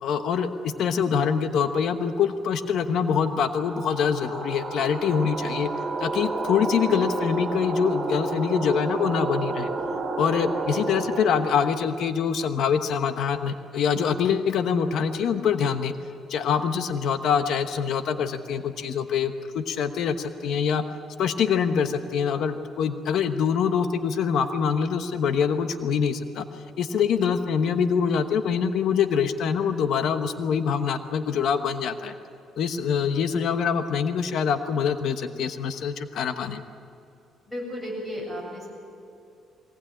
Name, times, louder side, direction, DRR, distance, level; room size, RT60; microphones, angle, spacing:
voice 1, 0.0-5.7 6.0-9.7 10.2-15.9 16.3-20.8 21.2-26.4 26.8-32.1 32.6-36.6, left 7 dB, 65° left, 8 dB, 1.1 m, -25 dB
sound 1, 3.3-11.7, right 3 dB, 25° right, 2.7 m, -31 dB
voice 2, 32.6-33.0 37.5-38.7, equal, 5° left, -2 dB, 7.6 m, -36 dB
22.5 x 19.0 x 8.8 m, 2.6 s
cardioid pair, 140°, 0 cm